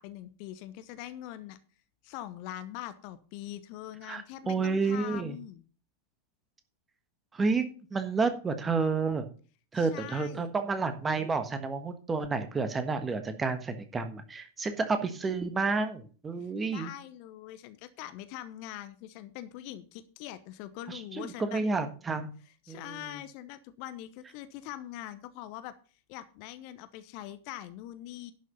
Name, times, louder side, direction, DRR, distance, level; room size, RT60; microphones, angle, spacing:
voice 1, 0.0-1.6 2.0-5.6 9.7-10.5 16.4-21.6 22.5-25.7 26.1-28.3, left 13 dB, 45° left, 13 dB, 0.8 m, -43 dB
voice 2, 4.1-5.4 7.3-7.6 7.9-9.3 9.7-16.9 20.9-22.4 22.7-23.0, right 4 dB, 15° right, 9 dB, 1.5 m, -30 dB
11.0 x 6.5 x 5.3 m, 0.39 s
figure-of-eight pair, 90°, 0 cm